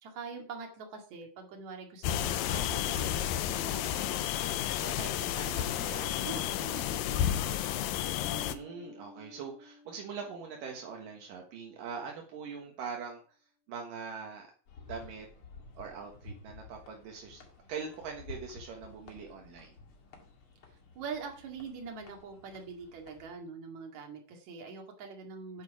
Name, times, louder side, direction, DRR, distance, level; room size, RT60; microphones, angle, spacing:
voice 1, 0.0-7.4 20.9-25.6, right 5 dB, 60° right, 2 dB, 3.3 m, -44 dB
sound 1, 2.0-8.5, left 11 dB, 90° left, 2.5 m, -31 dB
Bass guitar, 8.2-10.9, left 1 dB, 70° left, 3.5 m, -52 dB
voice 2, 8.5-13.2 13.7-14.5 14.9-15.3 15.8-17.4 17.7-19.7, right 5 dB, 75° right, 1 dB, 3.0 m, -42 dB
sound 2, 14.7-23.3, left 4 dB, 45° left, 2.4 m, -52 dB
9.5 x 9.1 x 4.8 m, 0.41 s
omnidirectional pair, 4.0 m